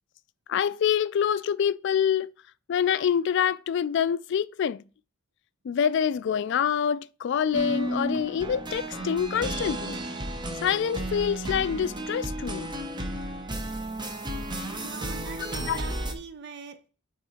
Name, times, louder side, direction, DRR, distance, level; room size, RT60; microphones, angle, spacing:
voice 1, 0.5-2.3 2.7-4.8 5.6-10.0 10.6-12.7 15.7-15.8, left 8 dB, 60° left, 0.3 m, -26 dB
sound 1, 7.5-16.1, right 1 dB, 20° right, 0.8 m, -33 dB
voice 2, 14.8-16.9, right 4 dB, 55° right, 0.7 m, -42 dB
9.0 x 3.7 x 4.3 m
head